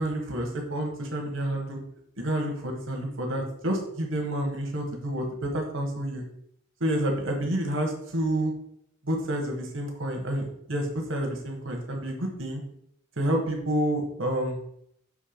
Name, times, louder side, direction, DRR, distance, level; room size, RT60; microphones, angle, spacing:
voice 1, 0.0-1.8 2.2-6.2 6.8-8.5 9.0-12.6 13.2-14.6, right 1 dB, 65° right, 2 dB, 1.3 m, -29 dB
6.4 x 3.3 x 5.2 m, 0.72 s
head